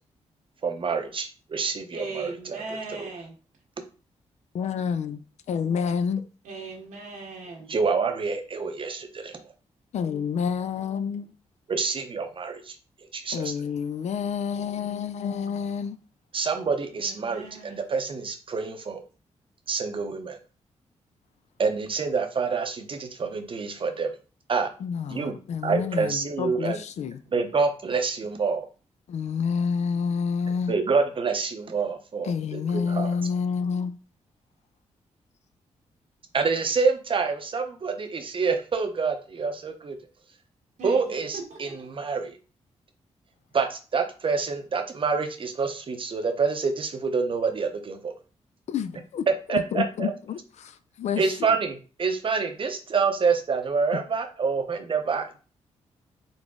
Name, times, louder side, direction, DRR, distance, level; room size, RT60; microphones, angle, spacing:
voice 1, 0.6-2.6 2.9-3.1 7.7-9.4 11.7-12.8 13.1-13.5 16.3-19.0 19.7-20.4 21.6-24.1 24.5-24.7 25.1-25.3 25.6-26.8 27.3-28.7 30.7-33.1 36.3-40.0 40.8-42.4 43.5-48.1 49.3-50.1 51.2-55.4, right 5 dB, 45° right, 0.7 m, -27 dB
voice 2, 1.9-3.3 6.4-7.7 16.9-17.8 27.0-27.1 40.8-41.9, right 3 dB, 90° right, 1.3 m, -39 dB
voice 3, 4.5-5.2 5.5-6.2 9.9-11.3 13.3-16.0 24.8-27.2 29.1-30.7 32.2-33.9 48.7-51.2 53.9-54.0, left 6 dB, 65° left, 0.4 m, -28 dB
3.9 x 2.0 x 3.5 m
cardioid pair, 60°, 13 cm